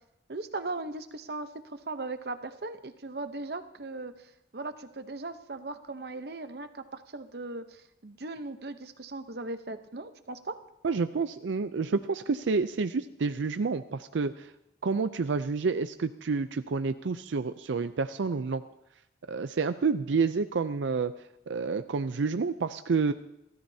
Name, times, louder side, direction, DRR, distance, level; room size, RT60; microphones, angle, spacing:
voice 1, 0.3-4.1 4.5-10.6, right 2 dB, 60° right, 9 dB, 0.8 m, -38 dB
voice 2, 10.8-14.5 14.8-18.6 19.3-21.1 21.5-23.1, right 4 dB, 85° right, 10 dB, 0.5 m, -29 dB
29.0 x 13.5 x 2.8 m, 0.80 s
head